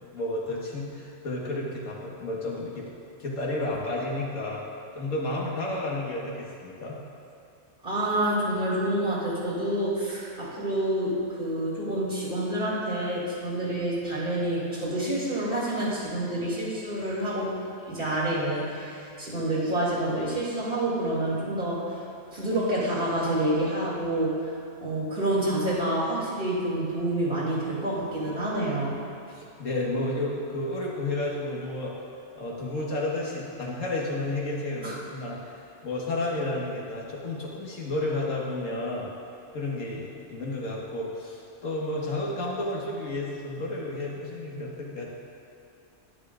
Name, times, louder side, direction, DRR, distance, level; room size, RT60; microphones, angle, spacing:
voice 1, 0.1-2.9 3.2-4.6 4.9-7.0 29.3-31.9 32.4-35.6 35.8-39.1 39.5-45.1, left 2 dB, 80° left, -4 dB, 1.8 m, -31 dB
voice 2, 7.8-17.5 17.9-22.0 22.3-24.5 24.8-29.0 34.8-35.0, right 1 dB, 45° right, -8 dB, 2.6 m, -28 dB
11.0 x 10.5 x 2.5 m, 2.7 s
omnidirectional pair, 1.3 m